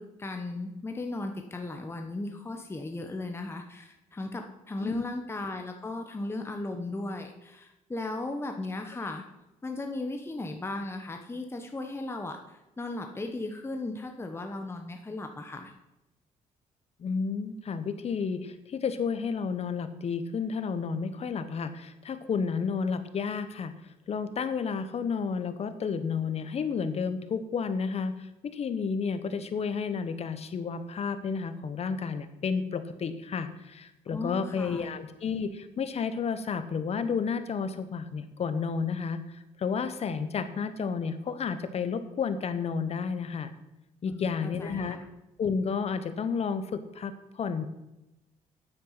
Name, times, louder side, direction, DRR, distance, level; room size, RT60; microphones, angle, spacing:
voice 1, 0.0-9.2 9.6-15.7 34.1-34.9 44.0-45.1, left 2 dB, 20° left, 4 dB, 1.1 m, -36 dB
voice 2, 17.0-23.7 24.1-39.2 39.6-43.5 44.0-45.0 45.4-47.6, left 5 dB, 50° left, 11 dB, 1.1 m, -31 dB
9.1 x 7.8 x 5.7 m, 0.96 s
cardioid pair, 85°, 14 cm